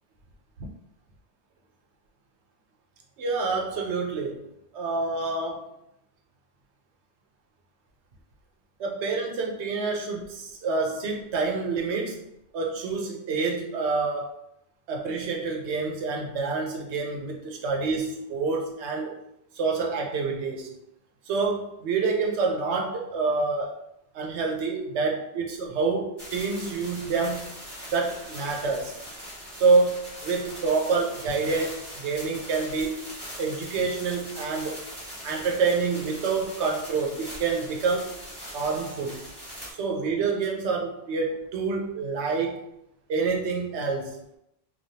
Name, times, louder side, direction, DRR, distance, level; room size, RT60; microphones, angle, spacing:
voice 1, 3.2-4.4 4.7-5.6 8.8-12.2 12.5-14.4 14.9-19.2 19.5-20.7 21.3-23.8 24.1-27.5 27.9-29.0 29.6-34.8 35.2-38.1 38.5-39.2 39.7-42.7 43.1-44.2, right 4 dB, 90° right, 0 dB, 0.9 m, -27 dB
sound 1, 26.2-39.7, equal, 25° right, 1.1 m, -41 dB
3.1 x 2.3 x 2.7 m, 0.80 s
omnidirectional pair, 1.1 m